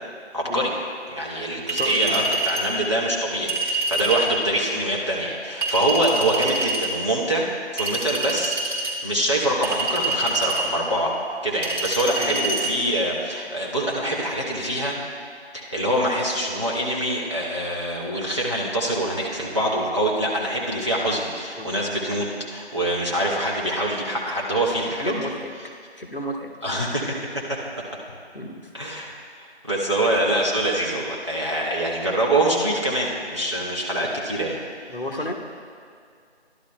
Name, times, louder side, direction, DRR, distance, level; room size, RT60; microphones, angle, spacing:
voice 1, 0.3-0.7 1.1-11.1 11.4-15.0 15.5-25.1 26.6-27.6 28.7-29.1 29.4-34.6, right 1 dB, 25° right, -4 dB, 1.1 m, -25 dB
Chink clink, 1.7-2.7 3.5-4.3 5.6-6.9 7.8-8.9 9.6-10.7 11.6-12.7, right 2 dB, 45° right, 2.9 m, -26 dB
voice 2, 1.8-2.3 4.3-4.4 6.1-6.5 12.2-12.3 21.6-21.7 25.0-25.5 26.0-26.5 28.3-28.6 34.9-35.3, left 1 dB, 50° left, 2 dB, 1.0 m, -32 dB
14.5 x 11.5 x 2.3 m, 2.2 s
figure-of-eight pair, 170°, 34 cm